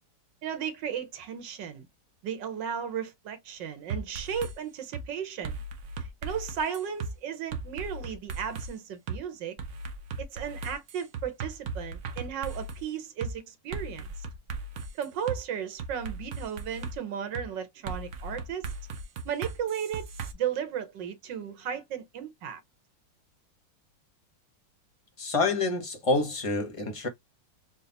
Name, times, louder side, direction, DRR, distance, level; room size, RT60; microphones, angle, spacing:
voice 1, 0.4-1.9 2.2-5.6 6.0-9.6 10.3-14.3 15.0-18.7 19.2-20.1 20.3-22.6, right 8 dB, 80° right, 1.6 m, -35 dB
sound 1, 3.9-4.5 4.9-5.1 5.4-7.1 7.5-8.7 9.1-9.2 9.6-12.8 13.2-13.3 13.7-15.4 15.8-17.0 17.3-17.5 17.9-20.3, right 4 dB, 60° right, 1.0 m, -37 dB
voice 2, 25.2-27.1, left 3 dB, 30° left, 0.7 m, -27 dB
4.0 x 2.3 x 3.9 m
omnidirectional pair, 1.9 m